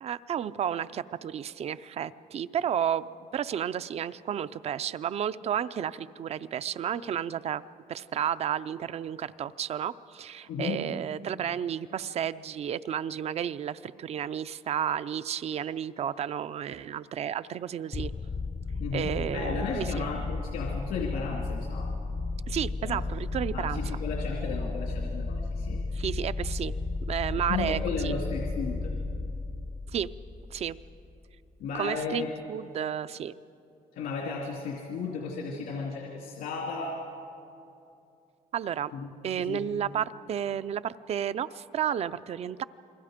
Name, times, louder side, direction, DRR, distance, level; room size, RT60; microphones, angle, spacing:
voice 1, 0.0-7.6 7.9-18.1 18.9-20.0 22.5-24.0 25.9-26.7 27.1-28.1 29.9-30.1 30.5-30.8 31.7-32.2 32.5-33.3 38.5-38.9 39.2-42.6, right 9 dB, 45° right, 15 dB, 0.5 m, -32 dB
voice 2, 10.5-10.8 18.8-21.9 22.8-23.0 23.5-25.8 27.3-28.9 31.6-32.3 33.9-37.0 38.9-39.1 39.4-39.6, left 5 dB, 85° left, -1 dB, 2.7 m, -34 dB
sound 1, 17.9-31.2, left 3 dB, 25° left, 0.5 m, -33 dB
28.5 x 21.5 x 5.1 m, 2.7 s
cardioid pair, 135°, 15 cm